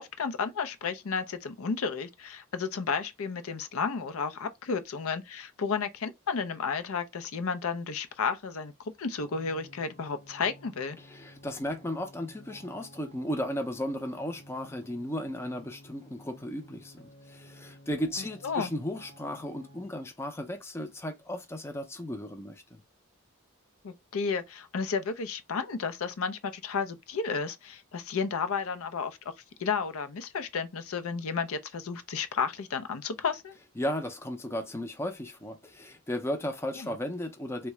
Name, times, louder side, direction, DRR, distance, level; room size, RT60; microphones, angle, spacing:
voice 1, 0.0-11.0 18.4-18.7 23.8-29.2 29.6-33.5 36.8-37.0, left 5 dB, 70° left, 0.5 m, -32 dB
sound 1, 9.2-19.8, equal, 45° left, 0.9 m, -53 dB
voice 2, 11.0-22.8 33.8-37.7, left 1 dB, 10° left, 0.5 m, -35 dB
3.6 x 2.2 x 3.0 m
head